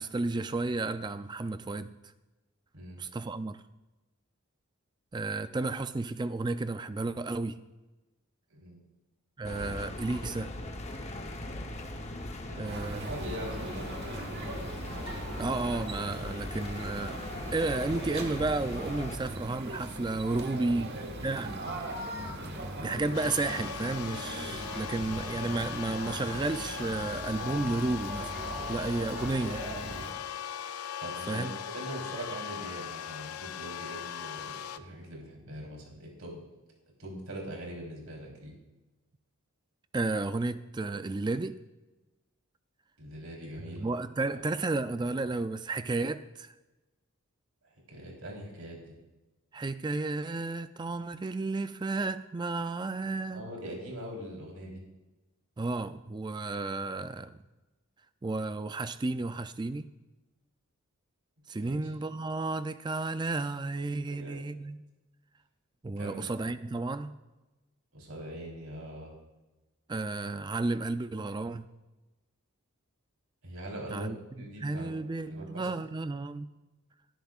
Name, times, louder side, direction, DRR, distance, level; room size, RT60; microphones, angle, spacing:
voice 1, 0.0-1.9 3.0-3.6 5.1-7.6 9.4-10.5 12.6-13.1 15.4-17.2 17.5-21.6 22.8-28.3 28.7-29.7 31.3-31.5 39.9-41.6 43.8-46.5 49.5-53.4 55.6-57.4 58.2-59.9 61.5-64.8 65.8-67.1 69.9-71.7 73.9-76.5, right 3 dB, 20° right, 0.3 m, -32 dB
voice 2, 8.5-8.8 12.4-13.9 20.3-21.9 29.9-30.1 31.0-36.4 37.0-38.5 43.0-43.9 44.3-44.4 47.9-49.0 53.3-54.8 61.6-61.8 64.1-64.4 66.0-66.5 67.9-69.1 73.4-75.7, right 1 dB, 70° right, 3.7 m, -42 dB
sound 1, 9.4-19.2, left 1 dB, 30° left, 0.9 m, -39 dB
sound 2, 12.6-30.1, right 1 dB, 45° right, 1.4 m, -40 dB
sound 3, 23.1-34.8, left 9 dB, 80° left, 0.5 m, -39 dB
19.0 x 10.5 x 2.4 m
head